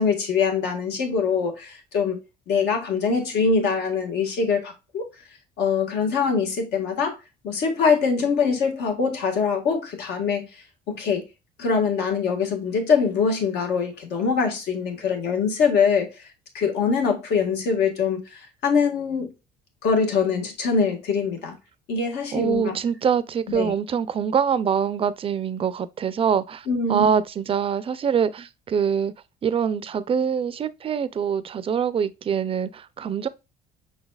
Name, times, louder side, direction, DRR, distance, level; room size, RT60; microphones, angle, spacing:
voice 1, 0.0-2.2 2.5-5.1 5.6-7.2 7.4-11.2 11.6-16.2 16.5-19.3 19.8-21.5 21.9-22.7 23.5-23.7 26.7-27.1, left 5 dB, 75° left, 1.5 m, -23 dB
voice 2, 22.3-29.1 29.4-33.3, right 7 dB, 35° right, 0.4 m, -24 dB
5.7 x 4.0 x 2.3 m
cardioid pair, 110°, 17 cm